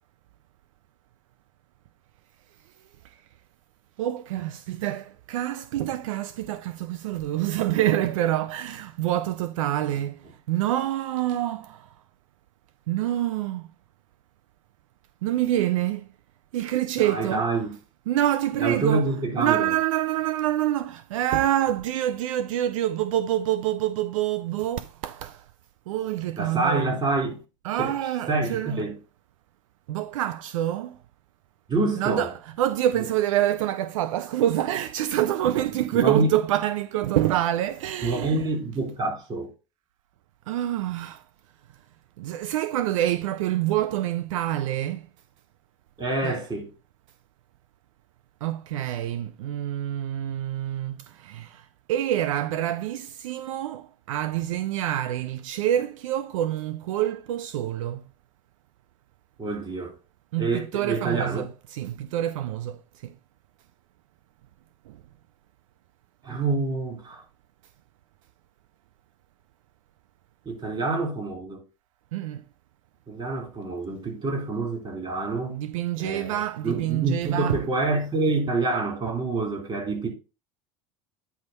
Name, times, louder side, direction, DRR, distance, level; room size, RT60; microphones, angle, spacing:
voice 1, 4.0-10.2 10.5-11.9 12.9-13.7 15.2-16.0 16.5-17.5 18.1-19.1 19.4-25.4 25.9-26.8 27.6-28.8 29.9-31.0 32.0-38.4 40.5-41.2 42.2-45.0 46.2-46.4 48.4-51.6 51.9-58.0 60.3-62.8 72.1-72.4 75.5-77.6, right 12 dB, 80° right, 0.5 m, -26 dB
voice 2, 17.0-17.7 18.6-19.7 26.4-27.4 27.8-27.9 28.3-29.0 31.7-32.3 35.9-36.3 38.0-39.5 46.0-46.7 59.4-60.0 60.4-61.5 66.2-67.2 70.5-71.6 73.1-75.5 76.0-80.1, right 3 dB, 30° right, 4.0 m, -27 dB
9.3 x 3.6 x 5.3 m
hypercardioid pair, 85°, 17 cm